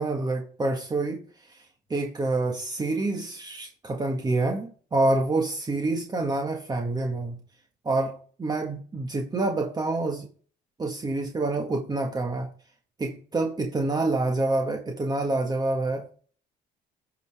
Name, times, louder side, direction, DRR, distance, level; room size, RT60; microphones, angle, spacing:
voice 1, 0.0-1.6 1.9-7.4 7.8-10.3 10.8-12.5 13.0-16.1, right 2 dB, 25° right, 1.6 m, -27 dB
9.1 x 5.0 x 3.5 m
cardioid pair, 110°, 17 cm